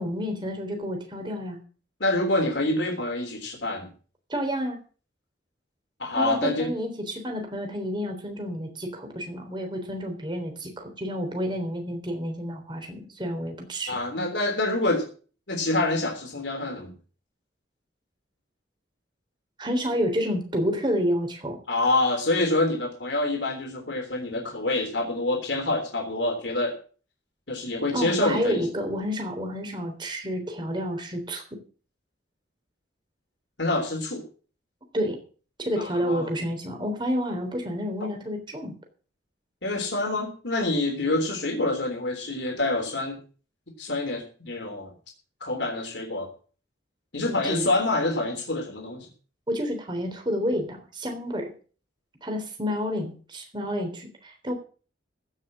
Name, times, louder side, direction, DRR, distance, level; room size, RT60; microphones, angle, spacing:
voice 1, 0.0-1.6 4.3-4.8 6.2-13.9 19.6-21.6 27.9-31.4 34.9-35.2 35.6-38.7 47.3-47.7 49.5-51.5 52.2-54.5, equal, 25° right, 4 dB, 3.5 m, -29 dB
voice 2, 2.0-3.9 6.0-6.7 13.9-15.0 15.5-16.9 21.7-26.8 27.5-28.7 33.6-34.2 35.8-36.3 38.0-38.1 39.6-43.2 43.8-44.9 45.4-46.3 47.1-49.1, left 2 dB, 75° left, 1 dB, 3.5 m, -26 dB
15.5 x 6.5 x 7.6 m, 0.40 s
head